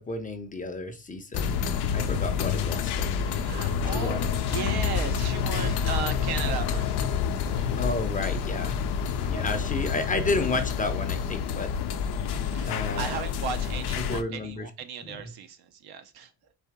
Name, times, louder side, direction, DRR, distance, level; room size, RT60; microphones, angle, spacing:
voice 1, 0.0-1.6 1.9-3.1 3.9-4.3 7.8-8.8 9.2-11.7 12.6-13.2 13.9-14.7 15.0-15.3, left 3 dB, 20° left, 0.6 m, -32 dB
sound 1, 1.3-14.2, left 7 dB, 85° left, 0.6 m, -28 dB
voice 2, 3.3-7.7 12.5-16.3, right 7 dB, 80° right, 0.8 m, -36 dB
4.3 x 2.8 x 3.5 m
cardioid pair, 110°, 38 cm